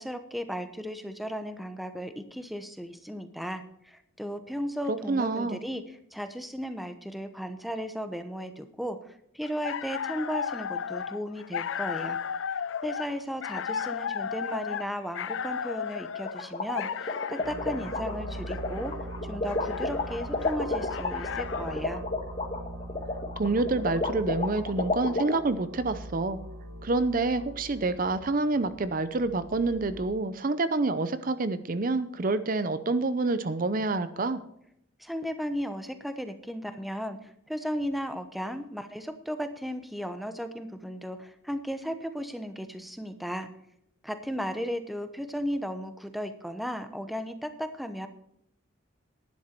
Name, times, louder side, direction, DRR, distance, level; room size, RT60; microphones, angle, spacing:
voice 1, 0.0-5.8 6.1-12.2 12.8-18.9 19.2-22.0 35.0-43.5 44.0-48.1, equal, ahead, 8 dB, 0.9 m, -35 dB
voice 2, 5.1-5.6 23.4-26.4 26.8-34.4, right 3 dB, 45° right, 12 dB, 0.6 m, -27 dB
sound 1, 9.4-21.9, left 7 dB, 65° left, 0.4 m, -35 dB
sound 2, 16.2-25.4, left 2 dB, 35° left, 1.6 m, -31 dB
sound 3, 17.4-30.1, right 1 dB, 75° right, 1.9 m, -41 dB
11.5 x 11.0 x 4.5 m, 0.75 s
head